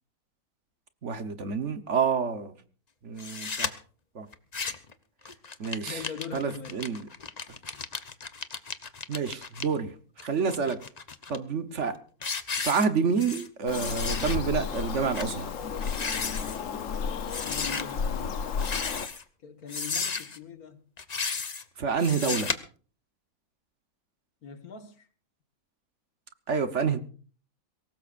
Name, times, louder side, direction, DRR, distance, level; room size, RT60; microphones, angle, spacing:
voice 1, 1.0-2.5 3.0-3.8 4.1-4.3 5.6-6.0 6.3-7.1 9.1-9.9 10.2-10.8 11.3-12.0 12.6-15.5 21.8-22.5 26.5-27.0, right 5 dB, 55° right, 1.4 m, -28 dB
sound 1, 3.2-3.7 4.3-4.9 5.2-9.6 10.2-11.4 11.8-12.0 12.2-13.5 13.7-14.4 14.7-14.8 15.1-15.3 15.7-16.6 17.3-17.8 18.5-19.2 19.7-20.4 21.0-21.6 22.0-22.6, left 5 dB, 30° left, 0.9 m, -34 dB
voice 2, 5.9-6.8 17.4-18.4 19.4-20.8 24.4-25.1, left 6 dB, 75° left, 2.1 m, -41 dB
Bird vocalization bird call bird song, 13.7-19.1, left 6 dB, 60° left, 1.3 m, -33 dB
22.5 x 18.0 x 2.5 m
omnidirectional pair, 1.6 m